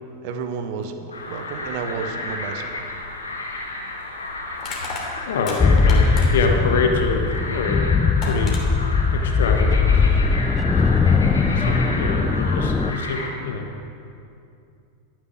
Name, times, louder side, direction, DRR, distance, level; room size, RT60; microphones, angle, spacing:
voice 1, 0.2-2.8 12.3-12.7, right 5 dB, 45° right, 7 dB, 1.1 m, -32 dB
sound 1, 1.1-13.3, left 2 dB, 75° left, 1.8 m, -32 dB
Crushing, 3.3-3.4 4.6-6.6 7.7-7.8 8.2-8.6, left 4 dB, 30° left, 2.9 m, -34 dB
voice 2, 5.2-7.9 8.2-8.7 9.1-10.6 11.4-13.7, left 4 dB, 60° left, 3 dB, 1.2 m, -26 dB
sound 2, 5.6-12.9, left 4 dB, 15° left, 0.6 m, -19 dB
13.5 x 9.4 x 6.0 m, 2.6 s
figure-of-eight pair, 90°, 0 cm